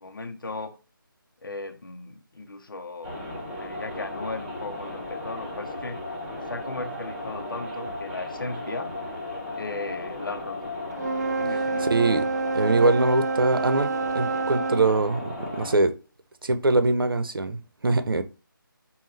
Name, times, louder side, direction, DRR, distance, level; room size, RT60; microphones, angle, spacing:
voice 1, 0.0-0.8 1.4-3.2 3.6-6.0 6.5-8.9 9.6-10.7 11.3-12.0, left 3 dB, 70° left, 0.8 m, -36 dB
sound 1, 3.0-15.7, left 2 dB, 5° right, 1.0 m, -35 dB
Wind instrument woodwind instrument, 10.9-14.9, right 4 dB, 50° right, 0.4 m, -28 dB
voice 2, 11.8-12.3 12.5-13.9 14.1-15.9 16.4-18.2, right 3 dB, 75° right, 0.8 m, -23 dB
5.7 x 2.3 x 3.3 m
figure-of-eight pair, 165°, 12 cm